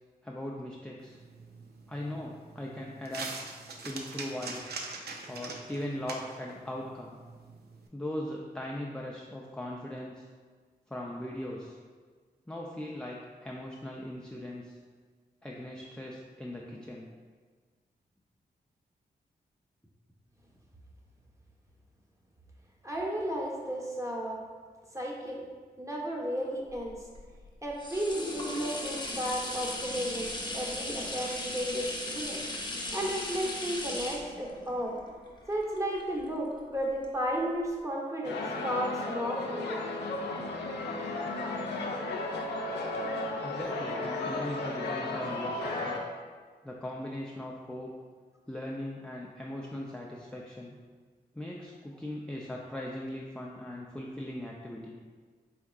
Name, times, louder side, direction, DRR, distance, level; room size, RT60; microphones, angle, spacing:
voice 1, 0.2-1.2 1.9-3.3 3.8-4.7 5.3-7.2 7.9-10.3 10.9-11.8 12.5-14.7 15.4-17.1 43.4-46.0 46.6-47.9 48.5-50.8 51.3-55.0, left 1 dB, 5° left, -3 dB, 0.4 m, -39 dB
Cash Raining Down, 1.0-7.9, right 3 dB, 70° right, 0.5 m, -43 dB
voice 2, 22.8-24.4 24.9-25.4 25.8-27.0 27.6-32.4 32.9-35.0 35.5-39.8, equal, 20° right, -3 dB, 1.0 m, -33 dB
sound 1, 26.8-36.5 37.0-37.1, left 1 dB, 25° left, 0.8 m, -37 dB
sound 2, 38.2-46.0, left 2 dB, 90° left, 0.4 m, -34 dB
4.5 x 3.5 x 2.3 m, 1.5 s
supercardioid pair, 40°, 17 cm